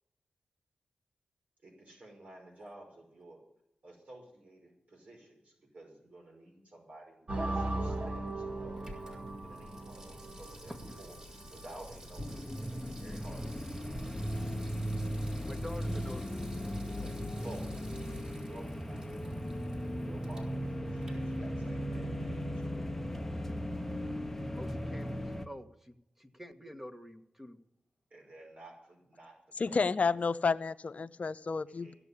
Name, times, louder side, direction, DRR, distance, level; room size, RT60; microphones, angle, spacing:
voice 1, 1.6-3.4 3.8-9.0 9.4-11.2 11.5-14.6 17.0-17.1 17.4-17.8 18.1-22.9 28.1-29.9 31.7-32.0, right 1 dB, 60° right, 0 dB, 5.5 m, -53 dB
sound 1, 7.3-14.5, right 2 dB, 45° right, 2.6 m, -39 dB
Water tap faucet / Sink (filling or washing), 7.7-21.9 22.2-22.3, right 1 dB, 25° right, 4.4 m, -56 dB
sound 2, 12.2-25.5, equal, 10° left, 1.3 m, -37 dB
voice 2, 15.4-16.5 24.5-27.6, equal, 10° right, 7 dB, 1.7 m, -47 dB
voice 3, 29.6-31.9, left 4 dB, 55° left, 13 dB, 0.7 m, -30 dB
16.0 x 7.1 x 9.9 m, 0.79 s
cardioid pair, 45°, 3 cm